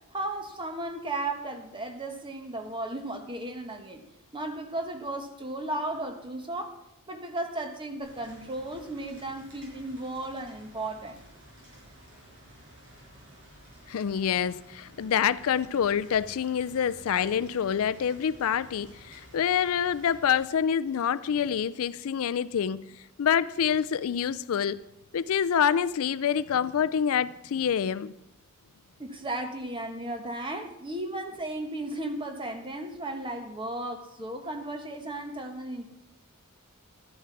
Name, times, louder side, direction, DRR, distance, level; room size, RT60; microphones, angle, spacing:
voice 1, 0.0-4.0 4.3-6.8 7.1-11.2 29.0-35.9, right 2 dB, 20° right, 1.3 m, -35 dB
Rain, 8.0-20.4, right 1 dB, 65° right, 6.1 m, -53 dB
voice 2, 13.9-22.8 23.2-24.8 25.1-28.1, left 8 dB, 70° left, 0.4 m, -26 dB
13.0 x 11.0 x 4.6 m
head